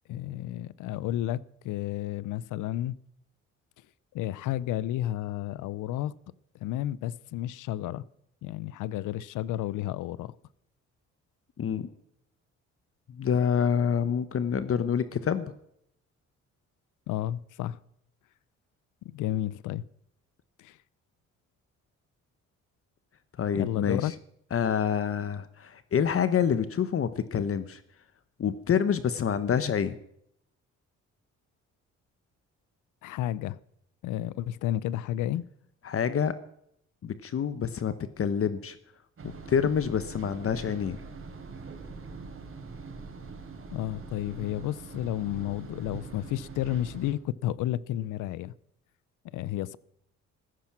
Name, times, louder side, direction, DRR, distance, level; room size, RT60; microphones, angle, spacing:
voice 1, 0.1-3.0 4.1-6.1 6.6-8.0 8.4-10.3 17.1-17.8 19.0-19.8 20.6-20.8 23.5-24.1 33.0-33.6 34.0-35.4 43.7-48.5 49.3-49.8, left 13 dB, 90° left, 0.7 m, -32 dB
voice 2, 11.6-11.9 13.1-15.5 23.4-24.1 24.5-27.8 28.4-30.0 35.8-36.3 37.0-38.8 39.5-41.0, left 7 dB, 45° left, 1.0 m, -27 dB
sound 1, 39.2-47.1, right 4 dB, 45° right, 4.6 m, -43 dB
15.0 x 14.5 x 6.1 m
cardioid pair, 90°, 30 cm